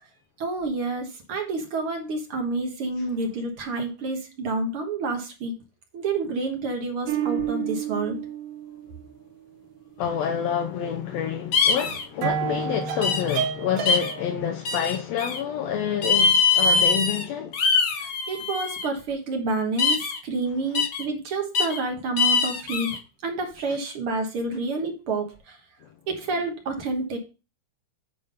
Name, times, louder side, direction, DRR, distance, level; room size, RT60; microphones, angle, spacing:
voice 1, 0.4-5.5 5.9-8.2 18.0-25.6 26.1-27.2, right 3 dB, 55° right, 1.7 m, -29 dB
sound 1, 7.1-9.1 11.4-11.5 11.8-14.4, right 8 dB, 85° right, 2.7 m, -29 dB
voice 2, 10.0-17.6, left 9 dB, 75° left, 1.6 m, -28 dB
sound 2, 11.5-12.0 13.0-13.4 13.9-14.1 14.6-15.4 16.0-17.2 17.5-18.9 19.8-20.2 20.7-21.0 21.5-21.8 22.2-23.0, left 4 dB, 55° left, 1.4 m, -22 dB
9.3 x 3.5 x 5.4 m
omnidirectional pair, 3.7 m